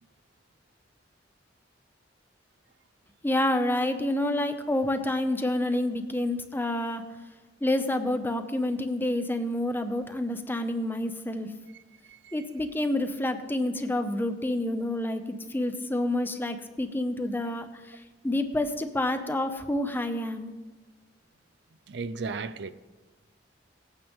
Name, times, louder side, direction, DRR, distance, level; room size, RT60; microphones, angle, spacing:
voice 1, 3.2-7.1 7.6-11.5 12.3-18.0 18.2-20.5, left 1 dB, 10° left, 0.7 m, -28 dB
voice 2, 21.9-22.7, right 4 dB, 65° right, 0.5 m, -35 dB
18.5 x 8.8 x 3.6 m
head